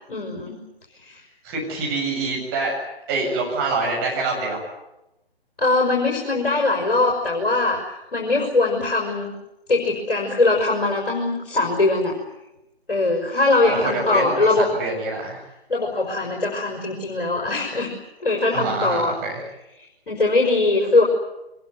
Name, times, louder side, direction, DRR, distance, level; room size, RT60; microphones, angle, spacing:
voice 1, 0.1-0.6 1.0-1.2 5.6-9.3 9.7-12.1 12.9-14.7 15.7-17.9 18.2-19.1 20.1-21.0, left 2 dB, 60° left, -1 dB, 5.7 m, -21 dB
voice 2, 1.4-2.7 3.1-4.6 13.6-15.4 18.5-19.5, right 3 dB, 20° right, -1 dB, 7.7 m, -26 dB
24.0 x 21.5 x 9.5 m, 0.92 s
figure-of-eight pair, 140°, 31 cm